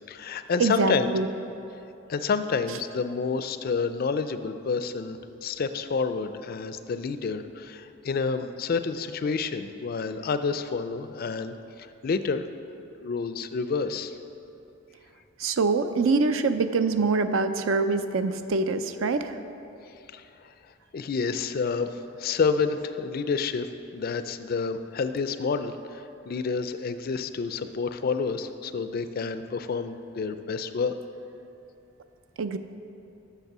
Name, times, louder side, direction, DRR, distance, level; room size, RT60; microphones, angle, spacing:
voice 1, 0.1-1.2 2.1-11.6 12.0-12.4 13.0-14.2 20.1-20.2 20.9-23.7 23.9-30.9, left 5 dB, 45° left, 11 dB, 0.4 m, -29 dB
voice 2, 0.6-1.3 15.4-19.4 32.4-32.6, right 4 dB, 70° right, 10 dB, 0.5 m, -24 dB
8.1 x 6.7 x 6.0 m, 2.8 s
head